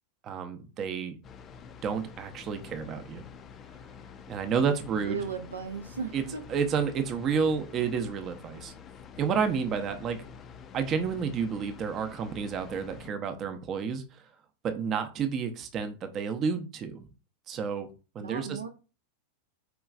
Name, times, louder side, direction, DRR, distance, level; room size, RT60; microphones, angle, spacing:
voice 1, 0.2-1.2 1.8-3.2 4.3-5.2 6.1-6.2 6.5-8.7 9.2-10.2 10.7-14.2 14.6-17.1 17.5-17.9 18.1-18.6, right 6 dB, 30° right, 7 dB, 0.6 m, -30 dB
sound 1, 1.2-13.1, left 6 dB, 25° left, 0.4 m, -48 dB
voice 2, 4.9-6.4 18.2-18.7, right 6 dB, 75° right, 6 dB, 0.5 m, -36 dB
4.7 x 3.0 x 2.4 m, 0.32 s
figure-of-eight pair, 90°, 0 cm